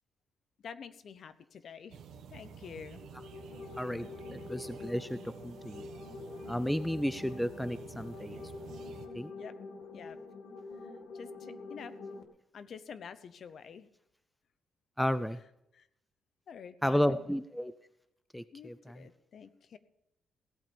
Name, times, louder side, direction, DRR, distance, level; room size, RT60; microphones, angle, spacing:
voice 1, 0.6-2.0 2.3-3.0 9.4-9.5 9.9-10.2 11.1-11.9 12.5-13.9 15.4-15.9 16.5-17.3 18.5-19.8, left 7 dB, 50° left, 13 dB, 0.8 m, -48 dB
sound 1, 1.9-9.1, right 7 dB, 80° right, 1.5 m, -50 dB
sound 2, 2.8-12.2, left 3 dB, 70° left, 1.9 m, -46 dB
voice 2, 3.8-5.9 6.5-8.4 9.1-9.3 15.0-15.4 16.8-17.7 18.3-19.1, equal, 5° left, 13 dB, 0.4 m, -33 dB
17.0 x 8.8 x 5.2 m, 0.80 s
cardioid pair, 160°, 0 cm